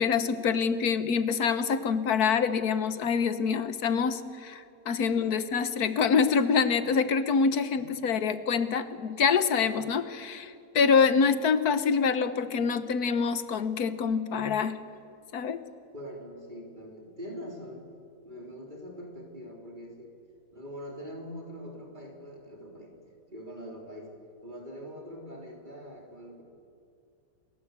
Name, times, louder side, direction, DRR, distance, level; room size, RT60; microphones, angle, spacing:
voice 1, 0.0-14.8 15.3-15.6, left 6 dB, 75° left, 12 dB, 1.6 m, -26 dB
voice 2, 15.9-17.9 18.2-20.1 20.5-22.9 23.3-24.1 24.4-26.4, equal, 30° right, 0 dB, 3.9 m, -43 dB
28.5 x 20.5 x 8.3 m, 2.5 s
omnidirectional pair, 1.6 m